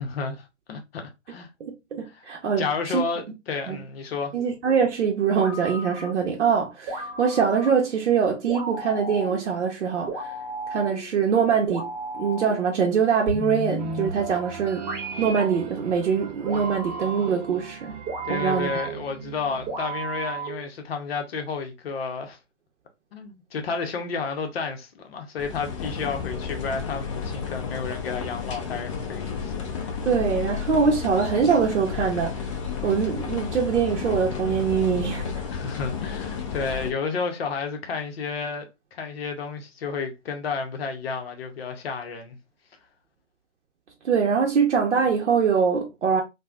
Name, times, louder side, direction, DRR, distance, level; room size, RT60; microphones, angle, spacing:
voice 1, 0.0-1.5 2.1-2.2 2.6-4.3 18.2-22.4 23.1-30.0 35.5-42.4, left 5 dB, 55° left, 0.8 m, -31 dB
voice 2, 1.6-3.0 3.7-3.8 4.3-10.3 10.7-14.8 15.2-18.0 18.3-18.7 30.1-32.3 32.8-35.3 44.0-46.2, right 6 dB, 70° right, 0.7 m, -23 dB
sound 1, 5.3-6.3 6.9-7.9 8.5-9.5 10.1-11.1 11.7-12.7 13.3-14.3 14.9-15.6 16.5-17.5 18.1-19.1 19.7-20.7, right 2 dB, 20° right, 1.0 m, -34 dB
sound 2, 13.8-20.4, right 6 dB, 40° right, 0.4 m, -40 dB
sound 3, 25.4-36.9, left 6 dB, 25° left, 0.4 m, -32 dB
3.3 x 2.1 x 2.2 m
figure-of-eight pair, 125°, 37 cm